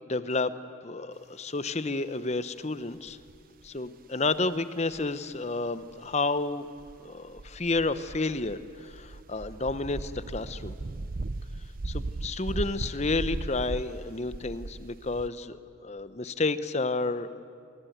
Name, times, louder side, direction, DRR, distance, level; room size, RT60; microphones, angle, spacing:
voice 1, 0.1-0.5 0.8-3.2 3.6-6.7 7.0-10.8 11.8-17.4, left 3 dB, 35° left, 14 dB, 0.8 m, -31 dB
sound 1, 3.1-3.8 4.9-5.2 5.9-6.1 6.8-15.3, right 2 dB, 45° right, 0.6 m, -37 dB
26.0 x 22.5 x 9.3 m, 2.4 s
head